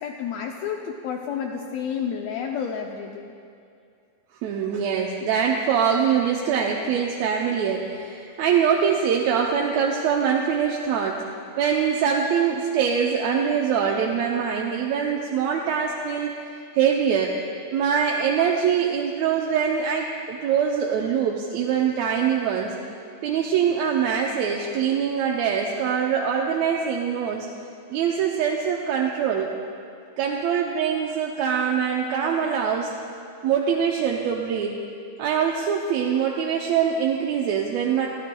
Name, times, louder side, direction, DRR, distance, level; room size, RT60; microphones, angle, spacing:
voice 1, 0.0-3.3, left 7 dB, 75° left, 1 dB, 1.7 m, -30 dB
voice 2, 4.4-11.2 11.6-17.4 17.7-22.7 23.2-27.5 27.9-29.5 30.2-33.0 33.4-34.8 35.2-38.1, right 7 dB, 75° right, -1 dB, 1.9 m, -23 dB
23.5 x 12.5 x 2.3 m, 2.4 s
omnidirectional pair, 3.4 m